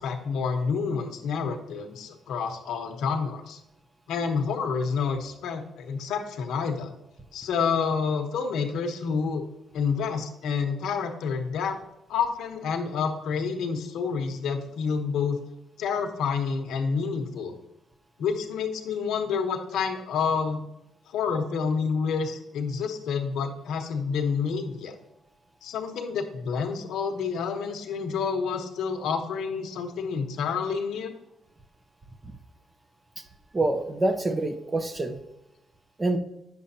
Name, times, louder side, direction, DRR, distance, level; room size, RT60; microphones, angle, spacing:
voice 1, 0.0-3.6 4.1-6.9 7.3-9.4 9.7-11.8 12.1-15.4 15.8-17.5 18.2-20.6 21.1-25.0 25.6-31.1, left 5 dB, 80° left, 5 dB, 1.1 m, -28 dB
voice 2, 33.5-35.2 36.0-36.2, right 2 dB, 25° right, 7 dB, 0.8 m, -26 dB
9.0 x 7.0 x 2.8 m, 0.89 s
cardioid pair, 90°, 0 cm